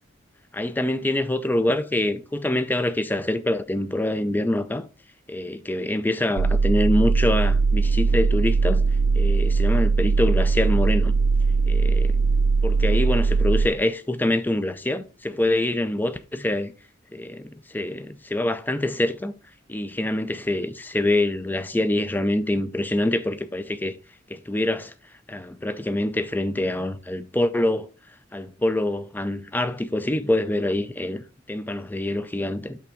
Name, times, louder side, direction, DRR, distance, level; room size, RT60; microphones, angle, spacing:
voice 1, 0.5-4.9 5.3-8.8 9.1-11.1 11.7-12.2 12.6-16.7 17.1-19.3 19.7-24.0 24.3-24.9 25.3-27.9 28.3-32.8, left 1 dB, 10° left, 0.4 m, -25 dB
sound 1, 6.4-13.7, right 4 dB, 85° right, 0.4 m, -20 dB
5.8 x 3.4 x 5.1 m
head